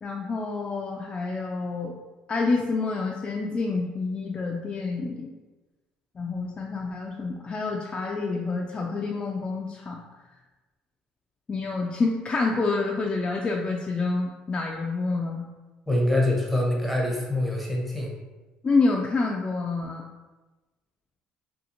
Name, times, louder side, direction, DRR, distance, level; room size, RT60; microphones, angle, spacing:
voice 1, 0.0-1.9 2.3-5.3 6.2-10.0 11.5-15.5 18.6-20.0, left 3 dB, 30° left, -1 dB, 0.3 m, -28 dB
voice 2, 15.9-18.2, left 1 dB, ahead, -2 dB, 0.7 m, -25 dB
2.7 x 2.4 x 2.5 m, 1.2 s
supercardioid pair, 75°, 3 cm